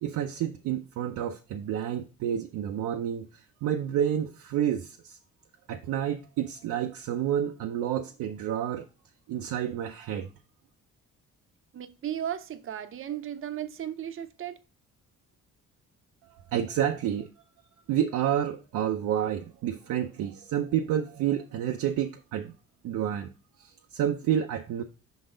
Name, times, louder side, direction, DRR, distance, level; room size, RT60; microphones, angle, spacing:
voice 1, 0.0-5.2 5.7-8.9 9.3-10.3 16.2-17.3 17.9-22.5 22.8-23.3 23.6-24.8, right 10 dB, 85° right, 0.6 m, -29 dB
voice 2, 11.7-14.6, right 10 dB, 45° right, 0.7 m, -35 dB
5.3 x 4.0 x 5.0 m
cardioid pair, 90°, 30 cm